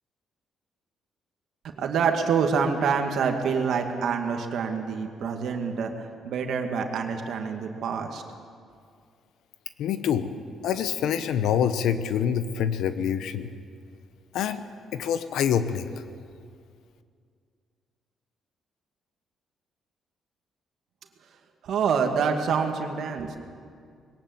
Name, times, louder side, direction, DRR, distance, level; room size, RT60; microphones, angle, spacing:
voice 1, 1.6-8.2 21.6-23.4, right 6 dB, 70° right, 4 dB, 2.2 m, -26 dB
voice 2, 9.8-10.3 10.6-13.5 14.3-14.6 14.9-15.9, left 8 dB, 80° left, 11 dB, 1.1 m, -26 dB
21.5 x 18.5 x 8.0 m, 2.2 s
cardioid pair, 90°, 0 cm